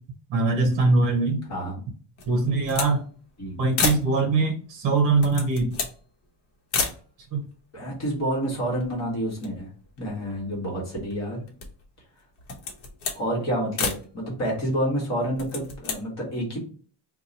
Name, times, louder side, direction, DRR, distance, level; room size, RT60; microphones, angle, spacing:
voice 1, 0.3-1.4 2.3-3.0 3.6-5.7 7.3-7.4, right 3 dB, 45° right, 2 dB, 0.7 m, -22 dB
voice 2, 1.5-1.8 3.4-3.6 7.7-9.7 10.0-11.4 13.1-16.6, right 1 dB, 35° left, -3 dB, 1.3 m, -28 dB
sound 1, 2.2-3.0 3.3-3.4 3.7-4.1 5.0-6.0 6.7-7.0 7.8-7.9 8.1-9.0 9.3-10.6 11.1-11.9 12.4-13.2 13.8-14.1 15.2-16.0, left 5 dB, 80° left, 1.0 m, -30 dB
2.8 x 2.3 x 3.9 m, 0.42 s
cardioid pair, 170°, 46 cm